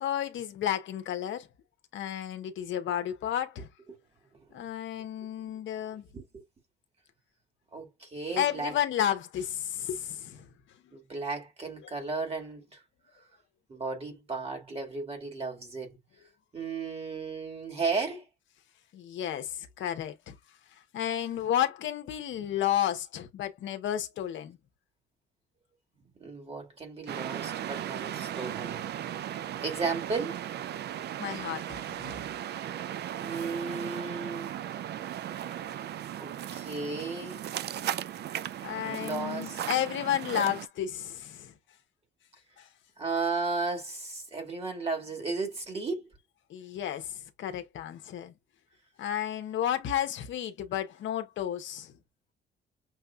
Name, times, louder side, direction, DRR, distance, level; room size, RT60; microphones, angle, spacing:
voice 1, 0.0-1.5 1.9-3.7 4.5-6.0 8.4-10.4 18.9-20.4 20.9-24.6 28.3-28.4 31.2-32.2 38.6-41.5 42.6-42.7 46.5-48.3 49.0-51.9, left 10 dB, 70° left, 0.8 m, -32 dB
voice 2, 7.7-8.8 10.9-12.8 13.1-13.3 13.7-16.0 16.5-18.3 26.2-28.8 29.6-30.4 33.2-34.6 35.7-35.9 36.2-37.4 38.8-39.7 43.0-46.1, right 4 dB, 30° right, 2.0 m, -34 dB
sound 1, 27.1-40.7, right 11 dB, 60° right, 0.4 m, -36 dB
6.2 x 2.4 x 2.3 m
cardioid pair, 90°, 20 cm